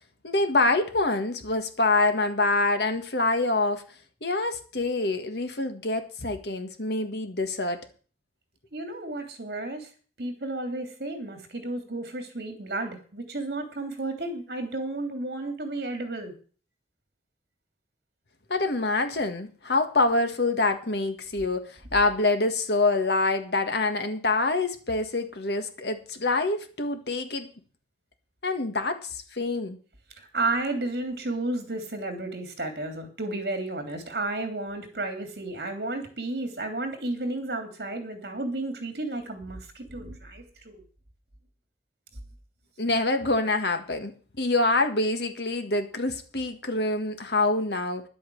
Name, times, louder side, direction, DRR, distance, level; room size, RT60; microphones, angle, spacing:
voice 1, 0.2-3.8 4.2-7.8 18.5-27.5 28.4-29.8 42.8-48.0, left 2 dB, 70° left, 1.7 m, -26 dB
voice 2, 8.7-9.9 10.2-16.3 30.2-40.8, right 2 dB, 60° right, 3.0 m, -32 dB
11.0 x 8.4 x 7.8 m
head